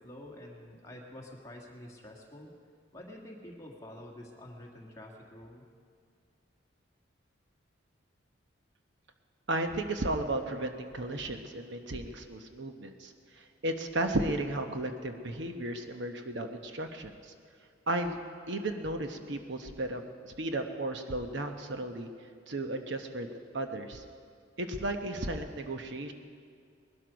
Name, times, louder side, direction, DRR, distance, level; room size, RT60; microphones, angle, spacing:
voice 1, 0.0-2.5 2.9-5.6, left 1 dB, 15° left, -1 dB, 1.8 m, -48 dB
voice 2, 9.5-17.3 17.9-18.2 18.5-22.1 22.5-23.3 23.5-24.0 24.6-26.1, right 1 dB, 60° right, 6 dB, 0.9 m, -34 dB
20.0 x 12.5 x 5.2 m, 2.2 s
head